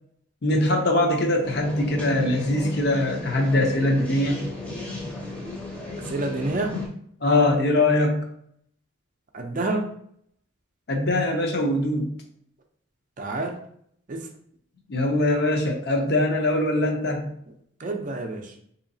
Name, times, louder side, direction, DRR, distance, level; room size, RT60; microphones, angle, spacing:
voice 1, 0.4-4.5 7.2-8.3 10.9-12.2 14.9-17.3, left 1 dB, 50° left, 2 dB, 0.6 m, -22 dB
sound 1, 1.4-6.9, left 2 dB, 5° left, 0.6 m, -34 dB
voice 2, 6.0-6.8 9.3-9.9 13.2-13.6 14.1-14.3 17.8-18.5, right 2 dB, 40° right, 3 dB, 0.4 m, -28 dB
3.8 x 2.8 x 2.6 m, 0.67 s
head